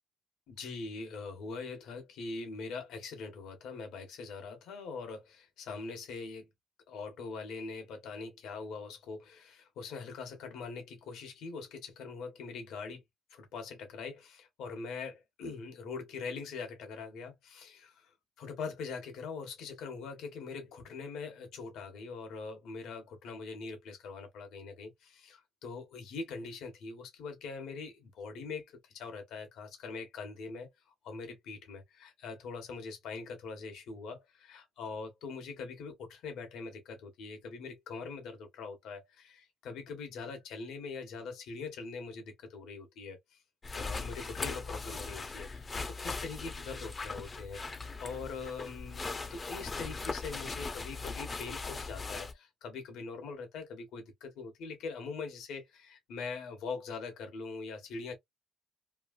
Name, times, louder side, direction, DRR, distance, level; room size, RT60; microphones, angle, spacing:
voice 1, 0.5-6.5 6.9-13.0 13.3-30.7 31.0-43.4 43.7-58.1, left 4 dB, 85° left, 1.2 m, -43 dB
sound 1, 43.6-52.3, left 4 dB, 30° left, 0.7 m, -39 dB
3.1 x 2.4 x 2.4 m
cardioid pair, 90°, 0 cm